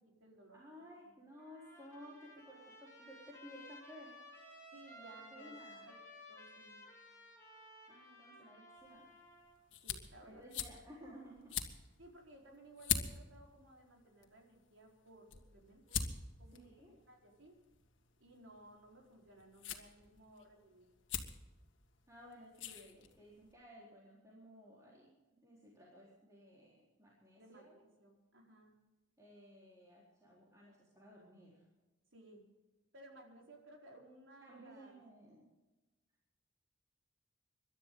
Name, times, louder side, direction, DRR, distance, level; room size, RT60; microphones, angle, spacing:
voice 1, 0.0-0.6 4.7-5.9 6.3-6.8 9.8-10.4 12.0-16.0 16.4-17.5 18.2-20.9 27.4-28.8 32.1-32.4 32.9-35.0, right 1 dB, 85° right, 0 dB, 4.5 m, -59 dB
voice 2, 0.5-4.1 5.3-5.9 7.9-9.2 10.2-11.9 16.5-16.9 22.1-27.8 29.2-31.7 34.4-35.5, equal, 15° right, -6 dB, 4.1 m, -56 dB
Trumpet, 1.4-9.6, left 1 dB, 15° left, 6.7 m, -56 dB
sound 1, 8.8-23.5, left 8 dB, 80° left, 1.8 m, -45 dB
26.0 x 12.0 x 3.9 m, 1.1 s
head